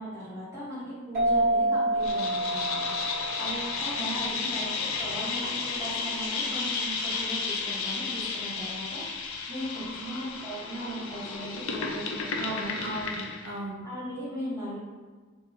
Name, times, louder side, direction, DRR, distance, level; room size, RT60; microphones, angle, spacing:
voice 1, 0.0-2.8 3.4-12.8 13.8-14.8, equal, 15° right, -11 dB, 0.9 m, -38 dB
sound 1, 1.1-4.4, right 1 dB, 50° right, 1.2 m, -28 dB
sound 2, 2.0-13.5, left 4 dB, 85° left, 0.4 m, -33 dB
voice 2, 4.0-4.4 9.8-10.2 12.3-13.8, right 1 dB, 65° right, -6 dB, 0.5 m, -37 dB
2.6 x 2.2 x 3.0 m, 1.4 s
head